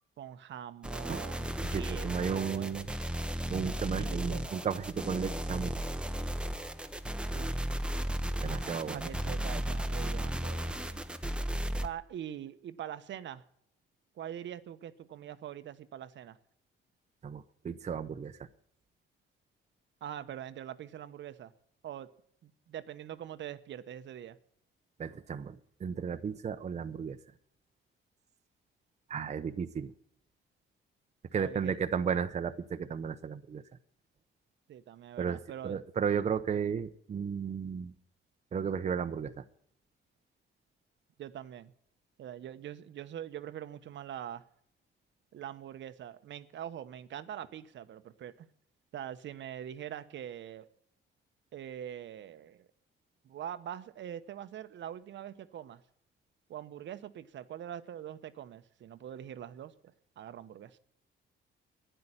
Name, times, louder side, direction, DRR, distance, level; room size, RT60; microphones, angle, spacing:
voice 1, 0.2-2.8 4.0-4.4 7.3-7.5 8.9-11.0 11.8-13.4 14.1-16.4 20.0-21.5 21.8-22.1 22.4-24.4 31.3-31.8 34.7-35.8 41.2-41.7 42.2-44.4 45.3-48.5 48.9-50.7 51.5-52.7 53.2-55.8 56.5-59.7 60.2-60.8, right 10 dB, 65° right, 0.9 m, -43 dB
sound 1, 0.8-11.9, right 1 dB, 5° right, 0.9 m, -35 dB
voice 2, 1.6-2.9 3.5-5.7 8.4-9.0 17.2-18.5 25.0-27.2 29.1-29.9 31.3-33.6 35.2-35.4 35.6-37.9 38.5-39.4, right 7 dB, 35° right, 0.8 m, -34 dB
12.5 x 10.5 x 9.9 m
cardioid pair, 140°, 21 cm